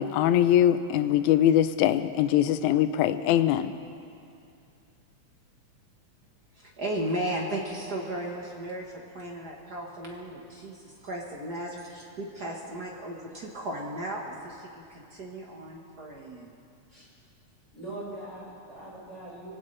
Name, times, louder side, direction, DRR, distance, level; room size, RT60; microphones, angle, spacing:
voice 1, 0.0-3.7, left 11 dB, 80° left, 11 dB, 1.9 m, -22 dB
voice 2, 6.5-16.6, right 1 dB, 55° right, -1 dB, 1.2 m, -35 dB
voice 3, 17.7-19.5, right 1 dB, 10° left, -7 dB, 5.1 m, -41 dB
24.0 x 17.0 x 3.3 m, 2.5 s
omnidirectional pair, 3.5 m